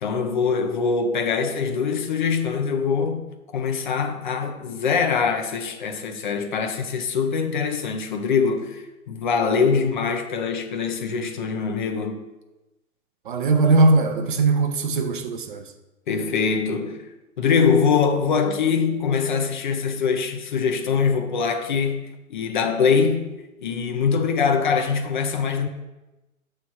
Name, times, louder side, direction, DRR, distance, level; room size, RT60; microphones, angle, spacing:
voice 1, 0.0-3.2 3.5-12.2 16.1-17.1 17.4-23.2 23.6-25.7, left 5 dB, 35° left, 0.5 m, -23 dB
voice 2, 13.2-15.7, right 3 dB, 40° right, 0.5 m, -20 dB
7.4 x 3.2 x 5.5 m
figure-of-eight pair, 110°, 42 cm